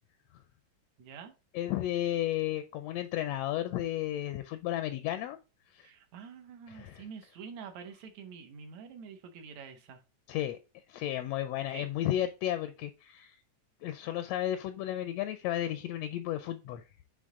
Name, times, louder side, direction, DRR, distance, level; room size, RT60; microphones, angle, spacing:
voice 1, 1.0-1.3 5.8-10.0 11.7-11.9, right 6 dB, 70° right, 6 dB, 2.2 m, -47 dB
voice 2, 1.5-5.4 5.7-5.9 6.7-7.0 10.3-10.6 10.9-13.4 13.8-16.8, left 12 dB, 80° left, 10 dB, 1.5 m, -33 dB
7.6 x 3.5 x 3.7 m, 0.30 s
omnidirectional pair, 3.4 m